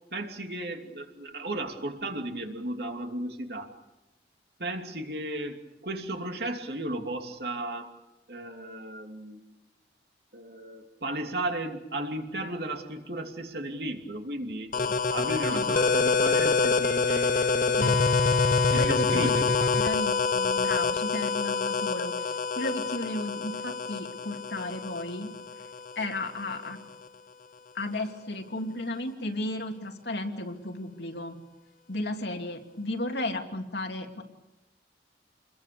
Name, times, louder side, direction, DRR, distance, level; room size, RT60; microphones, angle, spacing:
voice 1, 0.1-3.7 4.6-7.9 8.3-9.4 10.3-14.8 15.1-18.2 18.7-19.8, right 1 dB, 60° right, 4 dB, 2.9 m, -35 dB
sound 1, 14.7-26.1, left 4 dB, 50° left, 0.9 m, -26 dB
voice 2, 18.7-19.3 19.8-25.3 26.0-26.8 27.7-31.4 31.9-34.2, left 1 dB, 75° left, 3 dB, 2.8 m, -34 dB
28.5 x 21.5 x 6.9 m, 0.96 s
head